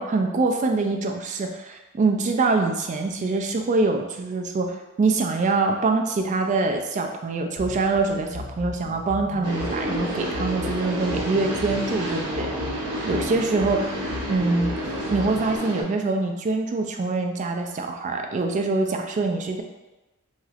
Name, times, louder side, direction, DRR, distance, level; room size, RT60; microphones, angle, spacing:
voice 1, 0.0-12.5 13.1-13.9 14.3-14.7 15.1-19.6, right 3 dB, 35° right, 3 dB, 0.3 m, -24 dB
sound 1, 7.6-15.6, left 2 dB, 70° left, 1.2 m, -37 dB
sound 2, 9.4-15.8, equal, 90° right, 0.6 m, -30 dB
3.1 x 2.9 x 2.3 m, 1.0 s
head